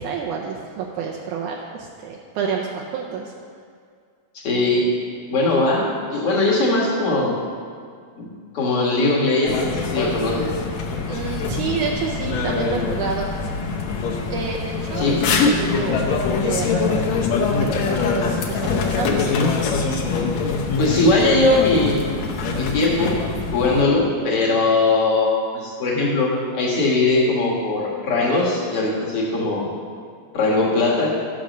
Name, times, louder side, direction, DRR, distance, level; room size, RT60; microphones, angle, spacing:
voice 1, 0.0-3.3 11.1-13.3 14.3-17.3 17.6-19.3, right 6 dB, 85° right, -1 dB, 1.7 m, -29 dB
voice 2, 4.3-4.9 5.3-7.4 8.2-8.3 8.5-10.5 15.0-15.3 20.8-22.1 22.5-23.2 23.5-29.7 30.3-31.1, left 2 dB, 50° left, -4 dB, 1.9 m, -20 dB
sound 1, 9.5-23.8, left 4 dB, 75° left, 1.6 m, -23 dB
12.5 x 6.6 x 5.2 m, 2.1 s
omnidirectional pair, 4.3 m